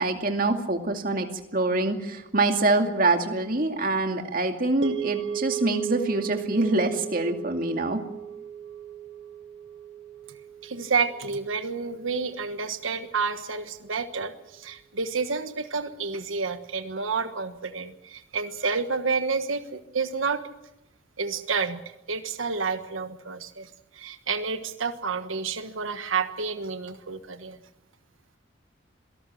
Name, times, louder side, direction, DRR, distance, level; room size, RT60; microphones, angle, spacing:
voice 1, 0.0-8.0, right 2 dB, 45° right, 5 dB, 2.4 m, -25 dB
sound 1, 4.8-13.1, right 9 dB, 65° right, 1.7 m, -36 dB
voice 2, 10.6-20.4 21.2-21.8 22.1-27.6, right 5 dB, 85° right, 9 dB, 1.3 m, -29 dB
27.0 x 18.5 x 7.8 m, 0.89 s
head